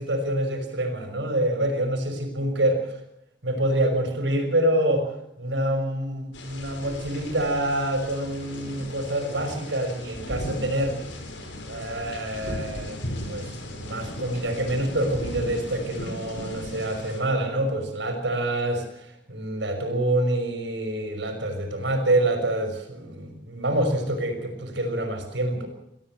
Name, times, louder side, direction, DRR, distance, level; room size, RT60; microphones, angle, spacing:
voice 1, 0.0-2.9 3.4-5.1 5.4-11.0 11.7-25.7, right 1 dB, 70° right, 5 dB, 5.8 m, -26 dB
sound 1, 6.3-17.2, left 1 dB, 85° left, 5.5 m, -37 dB
25.0 x 15.5 x 7.7 m, 0.82 s
head